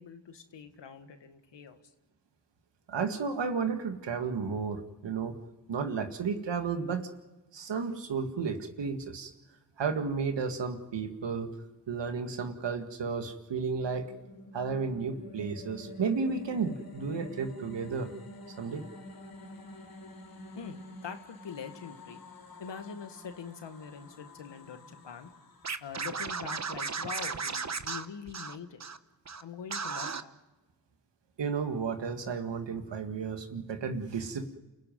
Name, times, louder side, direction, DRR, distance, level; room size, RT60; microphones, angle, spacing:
voice 1, 0.0-1.8 20.6-22.2 22.6-25.3 25.8-28.8 29.4-30.4, left 6 dB, 80° left, 7 dB, 1.9 m, -44 dB
voice 2, 2.9-5.4 5.7-7.1 7.5-9.3 9.8-11.6 11.9-14.1 14.5-18.1 18.6-18.8 31.4-34.5, right 5 dB, 80° right, 7 dB, 1.9 m, -33 dB
sound 1, 13.6-26.8, left 2 dB, 55° left, 2.5 m, -48 dB
Scratching (performance technique), 25.6-29.0 29.3-29.4 29.7-30.2, right 5 dB, 40° right, 1.1 m, -35 dB
28.5 x 15.5 x 9.3 m, 1.1 s
cardioid pair, 45°, 43 cm